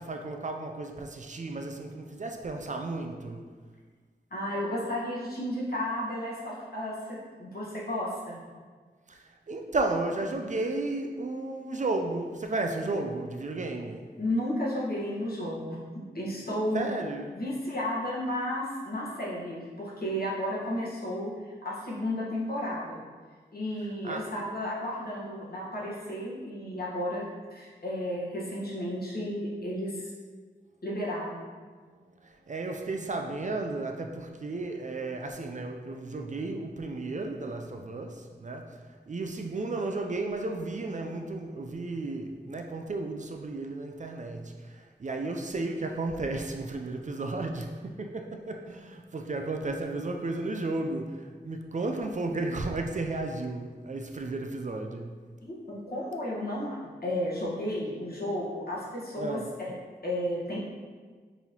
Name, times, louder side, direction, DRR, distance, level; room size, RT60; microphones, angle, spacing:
voice 1, 0.0-3.4 9.1-14.1 16.7-17.4 24.0-24.3 32.2-38.8 39.1-55.1 59.2-59.5, right 2 dB, 45° right, 4 dB, 0.4 m, -33 dB
voice 2, 4.3-8.4 14.2-15.8 16.1-16.9 17.3-23.0 23.5-30.1 30.8-31.4 55.4-59.7 60.0-60.6, left 1 dB, 60° left, -5 dB, 1.2 m, -33 dB
5.4 x 2.9 x 2.8 m, 1.5 s
wide cardioid pair, 55°, 18 cm